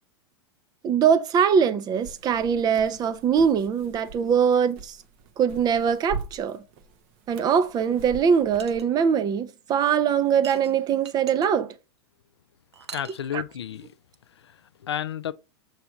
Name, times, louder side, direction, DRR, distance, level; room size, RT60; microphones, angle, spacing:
voice 1, 0.8-5.0 5.4-6.6 7.3-11.7 13.3-13.4, right 7 dB, 30° right, 0.7 m, -22 dB
sound 1, 2.0-8.8, right 4 dB, 45° right, 1.1 m, -42 dB
sound 2, 8.6-8.8 10.4-11.5 12.7-13.2, right 7 dB, 75° right, 0.8 m, -41 dB
voice 2, 12.9-13.9 14.4-15.3, left 10 dB, 75° left, 0.4 m, -32 dB
6.8 x 3.3 x 4.9 m
figure-of-eight pair, 90°, 14 cm